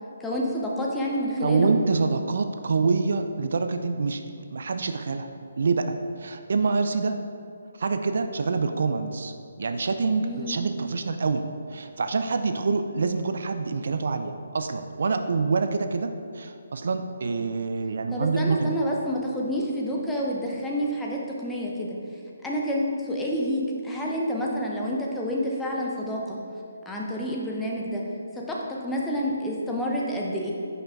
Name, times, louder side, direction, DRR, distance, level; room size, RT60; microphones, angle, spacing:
voice 1, 0.2-1.7 10.2-10.6 18.1-22.0 22.4-26.4 26.9-28.0 28.3-30.5, equal, 5° left, -3 dB, 0.7 m, -28 dB
voice 2, 1.4-4.2 4.5-5.3 5.6-7.2 7.8-11.4 11.7-18.7, right 4 dB, 65° right, 7 dB, 0.4 m, -26 dB
5.7 x 5.2 x 3.5 m, 2.4 s
hypercardioid pair, 155°, 0 cm